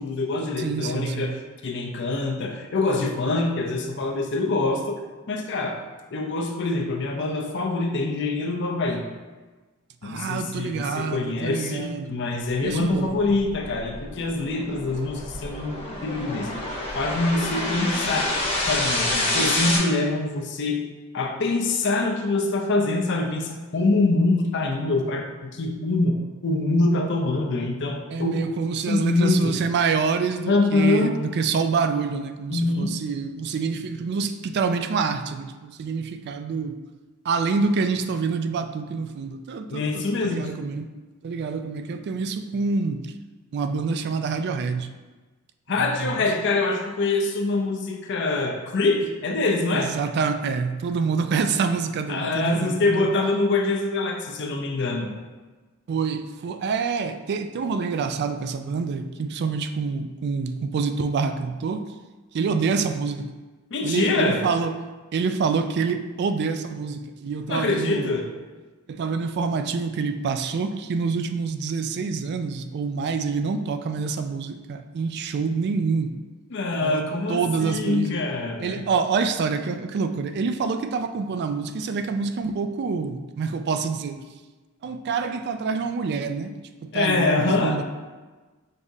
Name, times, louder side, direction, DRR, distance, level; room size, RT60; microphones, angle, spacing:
voice 1, 0.0-5.0 5.3-5.8 6.1-9.0 10.0-15.7 16.0-16.5 16.9-18.3 18.6-20.8 21.1-28.3 28.9-29.6 30.5-31.1 32.5-32.9 39.7-40.5 45.7-49.9 52.1-55.2 63.7-64.4 67.5-68.3 76.5-78.8 86.9-87.8, left 2 dB, 60° left, 3 dB, 0.5 m, -24 dB
voice 2, 0.6-1.4 10.0-12.1 12.6-13.1 28.1-36.8 37.2-40.9 41.2-43.1 43.5-44.9 45.8-46.3 49.7-53.1 55.9-61.8 62.3-63.3 63.8-64.8 65.1-68.1 68.9-76.2 76.8-77.0 77.3-78.1 78.6-84.2 84.8-86.5 86.8-87.8, right 5 dB, 55° right, 9 dB, 0.3 m, -26 dB
sound 1, 12.9-19.8, left 1 dB, 30° left, 1.0 m, -28 dB
5.4 x 3.5 x 2.6 m, 1.3 s
head